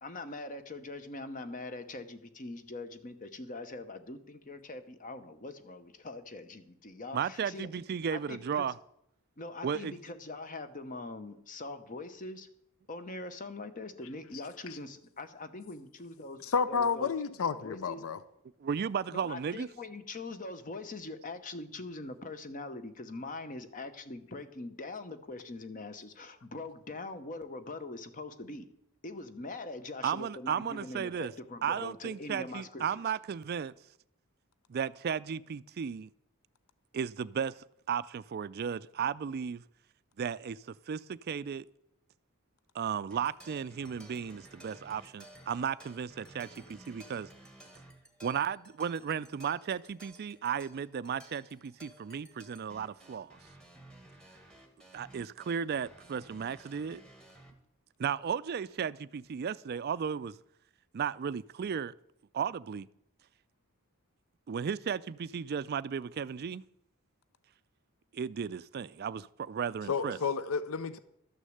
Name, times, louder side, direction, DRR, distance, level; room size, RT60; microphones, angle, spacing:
voice 1, 0.0-7.7 8.1-8.7 9.4-12.5 12.9-16.4 16.7-17.1 17.5-18.0 19.1-28.7 29.0-33.0, left 2 dB, 35° left, 0.9 m, -43 dB
voice 2, 7.1-8.7 9.6-10.0 18.6-19.7 30.0-31.3 31.6-33.7 34.7-36.1 36.9-39.6 40.2-41.7 42.7-47.3 48.2-53.4 54.9-57.0 58.0-60.4 60.9-61.9 62.3-62.9 64.5-66.6 68.1-70.2, right 7 dB, 45° right, 0.3 m, -35 dB
voice 3, 16.5-18.2 69.9-71.0, left 5 dB, 65° left, 0.5 m, -30 dB
sound 1, 43.1-57.5, right 1 dB, 5° left, 1.5 m, -55 dB
12.5 x 6.4 x 7.8 m
head